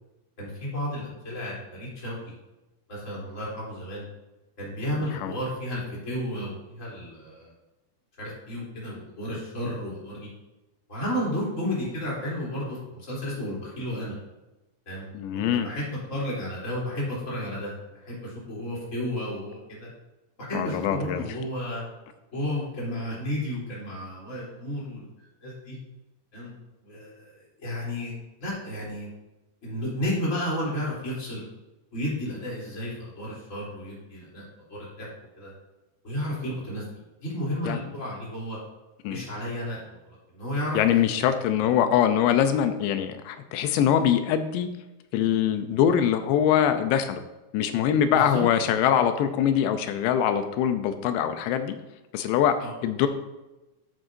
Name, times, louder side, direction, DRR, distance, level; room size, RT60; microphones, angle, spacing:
voice 1, 0.4-2.3 2.9-4.1 4.6-7.5 8.2-10.3 10.9-14.1 14.8-19.9 20.4-21.8 22.3-25.8 26.3-26.5 26.8-28.1 28.4-29.1 29.6-31.4 31.9-35.1 35.4-35.5 36.0-36.8 37.2-38.6 39.1-41.0 48.1-48.4 52.6-52.8, equal, 20° left, -6 dB, 3.1 m, -32 dB
voice 2, 5.0-5.3 15.1-15.7 20.5-21.2 37.7-37.8 39.0-39.3 40.7-44.7 45.1-47.2 47.5-51.8 52.1-52.6 52.8-53.1, left 9 dB, 85° left, 9 dB, 2.8 m, -23 dB
11.0 x 7.8 x 2.7 m, 1.0 s
omnidirectional pair, 4.9 m